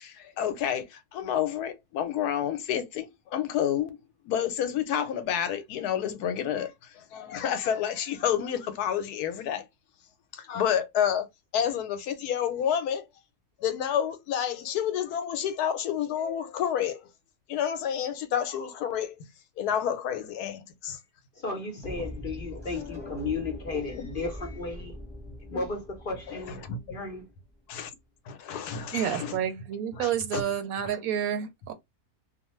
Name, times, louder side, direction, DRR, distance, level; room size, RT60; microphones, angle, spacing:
voice 1, 0.0-4.0 4.3-9.7 10.3-11.3 11.5-13.0 13.6-17.1 17.5-19.2 19.6-21.0 22.0-22.1 23.9-24.1 26.5-26.8 27.7-27.9 28.3-29.4 30.0-30.4, left 9 dB, 80° left, 1.1 m, -29 dB
voice 2, 21.4-25.0 25.5-26.6 26.9-27.3, left 3 dB, 45° left, 0.7 m, -34 dB
sound 1, 21.8-27.8, left 1 dB, ahead, 0.9 m, -42 dB
voice 3, 28.9-31.7, right 9 dB, 75° right, 1.0 m, -29 dB
2.5 x 2.5 x 2.9 m
omnidirectional pair, 1.6 m